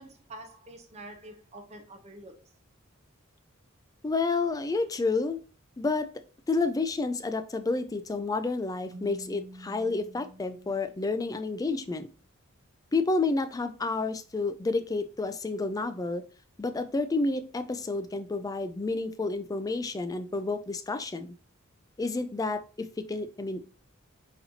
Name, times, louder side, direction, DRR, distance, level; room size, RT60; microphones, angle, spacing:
voice 1, 0.0-2.4, right 1 dB, 30° right, 4 dB, 0.8 m, -46 dB
voice 2, 4.0-5.4 5.8-6.1 6.5-12.1 12.9-16.2 16.6-21.3 22.0-23.6, left 3 dB, 15° left, 10 dB, 0.3 m, -30 dB
Keyboard (musical), 8.9-11.6, right 1 dB, 75° right, 0.5 m, -49 dB
4.1 x 4.1 x 2.8 m, 0.38 s
head